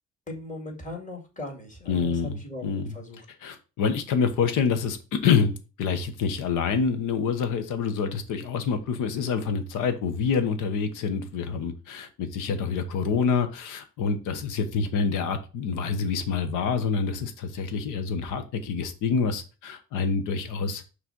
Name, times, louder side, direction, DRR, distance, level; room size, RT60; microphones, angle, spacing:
voice 1, 0.3-2.6 2.9-3.2, left 1 dB, 25° left, 0 dB, 2.1 m, -38 dB
voice 2, 1.9-3.0 3.4-20.8, left 5 dB, 90° left, 9 dB, 1.0 m, -27 dB
6.0 x 3.2 x 5.2 m, 0.33 s
cardioid pair, 90°, 30 cm